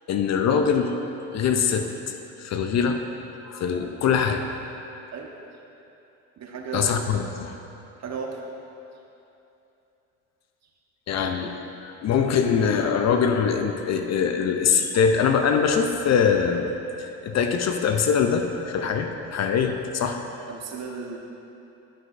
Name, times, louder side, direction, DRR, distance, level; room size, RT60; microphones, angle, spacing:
voice 1, 0.1-0.9 1.3-3.0 3.4-4.4 6.7-7.5 11.1-11.5 11.8-16.7 17.0-20.2, left 6 dB, 45° left, 6 dB, 0.6 m, -23 dB
voice 2, 6.4-6.9 8.0-8.4 20.5-21.2, right 5 dB, 45° right, 0 dB, 1.2 m, -34 dB
11.0 x 6.5 x 2.6 m, 2.9 s
supercardioid pair, 70°, 37 cm